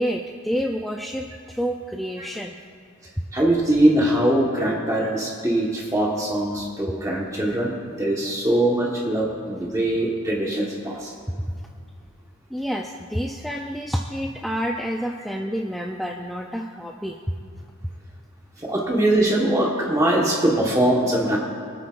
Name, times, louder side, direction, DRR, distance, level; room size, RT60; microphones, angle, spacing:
voice 1, 0.0-2.6 11.5-11.6 12.5-17.2, equal, ahead, 1 dB, 0.3 m, -28 dB
voice 2, 3.3-7.7 8.0-11.1 18.6-21.4, right 1 dB, 15° right, -3 dB, 1.2 m, -22 dB
23.5 x 8.8 x 2.5 m, 2.4 s
head